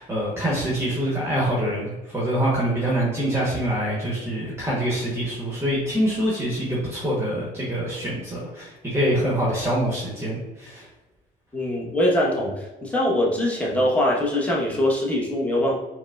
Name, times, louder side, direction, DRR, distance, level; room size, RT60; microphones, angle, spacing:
voice 1, 0.0-10.9, right 1 dB, 15° right, -5 dB, 0.9 m, -25 dB
voice 2, 11.5-15.8, left 1 dB, 10° left, -4 dB, 0.9 m, -22 dB
4.6 x 2.0 x 2.3 m, 1.1 s
cardioid pair, 110°, 17 cm